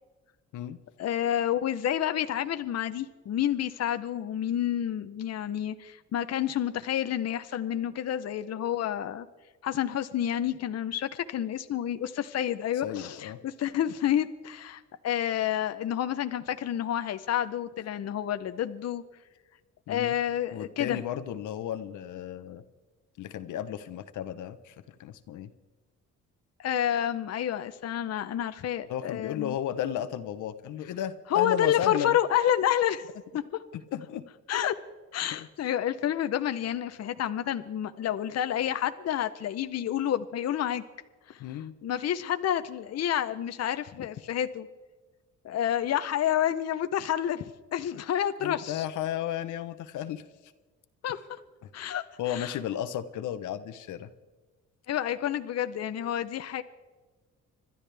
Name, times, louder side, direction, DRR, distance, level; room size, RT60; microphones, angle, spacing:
voice 1, 1.0-9.3 9.6-19.0 19.9-21.0 26.6-29.6 31.3-33.0 33.3-33.4 34.5-34.7 35.1-40.8 41.3-41.4 41.8-44.7 45.4-48.9 51.0-51.2 51.7-52.5 54.9-56.6, left 10 dB, 55° left, 10 dB, 0.8 m, -29 dB
voice 2, 12.8-13.4 19.9-20.2 20.5-22.6 23.2-24.7 25.0-25.5 28.9-32.2 33.7-34.2 35.3-35.5 41.4-41.7 48.4-50.2 52.2-54.1, left 10 dB, 80° left, 11 dB, 1.0 m, -34 dB
26.0 x 12.5 x 3.4 m, 1.3 s
cardioid pair, 90°, 30 cm